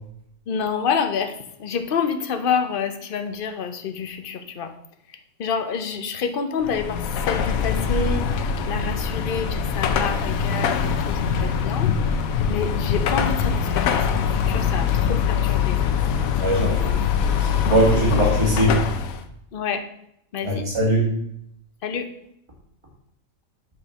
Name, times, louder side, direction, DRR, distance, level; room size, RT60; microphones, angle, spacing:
voice 1, 0.5-1.3 1.6-4.7 5.4-7.0 7.3-8.2 8.7-11.9 12.5-15.8 19.5-19.8 20.3-20.6 21.8-22.1, left 6 dB, 50° left, 8 dB, 0.8 m, -27 dB
Car passing by / Traffic noise roadway noise / Engine, 6.6-19.2, left 7 dB, 85° left, 1.1 m, -23 dB
voice 2, 16.4-17.0 17.4-18.8 20.4-21.1, right 1 dB, 20° right, -3 dB, 2.1 m, -21 dB
6.4 x 4.6 x 5.3 m, 0.74 s
omnidirectional pair, 1.4 m